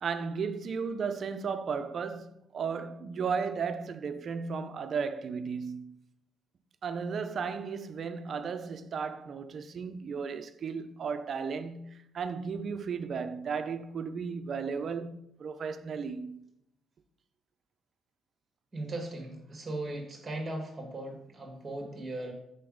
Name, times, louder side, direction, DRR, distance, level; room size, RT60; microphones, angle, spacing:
voice 1, 0.0-6.0 6.8-16.4, right 5 dB, 55° right, 0.5 m, -35 dB
voice 2, 18.7-22.3, right 2 dB, 25° right, 1.6 m, -38 dB
5.7 x 4.0 x 5.0 m
cardioid pair, 90°, 0 cm